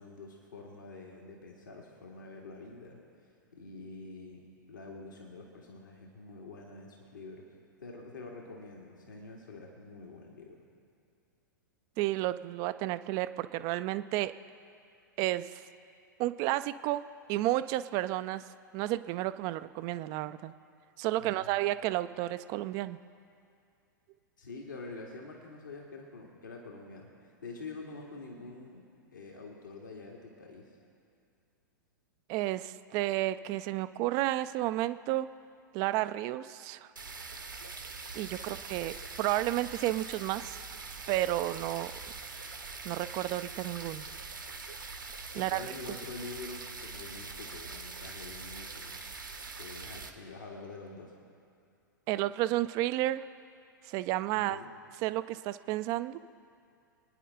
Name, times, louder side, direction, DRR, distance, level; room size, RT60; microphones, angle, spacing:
voice 1, 0.0-3.0 3.5-7.5 7.8-10.6 21.2-21.6 24.4-28.8 29.1-30.8 45.3-48.9 49.6-51.1 54.3-54.7, left 3 dB, 70° left, -1 dB, 2.2 m, -46 dB
voice 2, 12.0-14.3 15.2-15.6 16.2-17.0 17.3-18.4 18.7-20.5 21.0-23.0 32.3-35.3 35.7-36.9 38.1-40.6 41.1-41.9 42.8-44.0 45.3-45.6 52.1-53.2 53.8-54.6 55.0-56.2, right 16 dB, 35° right, 13 dB, 0.5 m, -31 dB
sound 1, 37.0-50.1, right 4 dB, 80° right, 1.5 m, -43 dB
27.5 x 10.0 x 3.7 m, 2.4 s
figure-of-eight pair, 100°, 11 cm